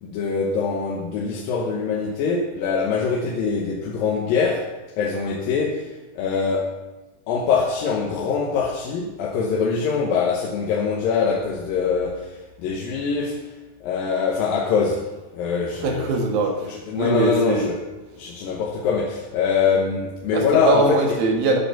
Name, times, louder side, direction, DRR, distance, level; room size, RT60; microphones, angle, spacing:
voice 1, 0.0-4.7 5.0-5.9 6.2-6.8 7.3-13.4 13.8-15.1 15.3-16.1 16.6-17.8 18.2-21.2, left 5 dB, 85° left, -1 dB, 2.8 m, -23 dB
voice 2, 15.8-16.7 16.9-17.7 20.3-21.6, right 3 dB, 85° right, 1 dB, 3.3 m, -22 dB
11.0 x 6.9 x 5.8 m, 1.1 s
omnidirectional pair, 4.1 m